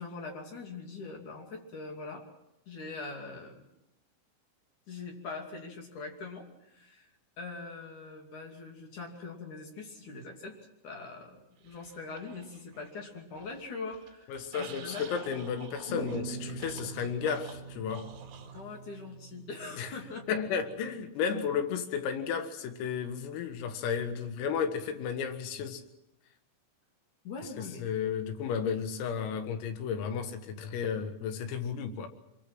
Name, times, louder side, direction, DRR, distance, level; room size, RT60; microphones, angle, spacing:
voice 1, 0.0-2.3 2.7-3.7 4.9-7.1 7.4-10.6 10.8-15.3 18.5-20.2 27.2-28.0, left 3 dB, 45° left, 3.5 m, -42 dB
sound 1, 11.6-13.0 13.3-18.6, right 7 dB, 70° right, 4.8 m, -50 dB
voice 2, 14.3-18.1 19.8-19.9 20.3-25.8 27.8-32.1, left 7 dB, 85° left, 4.3 m, -33 dB
sound 2, 15.9-20.9, right 3 dB, 10° left, 7.1 m, -44 dB
25.5 x 23.0 x 6.1 m
omnidirectional pair, 5.9 m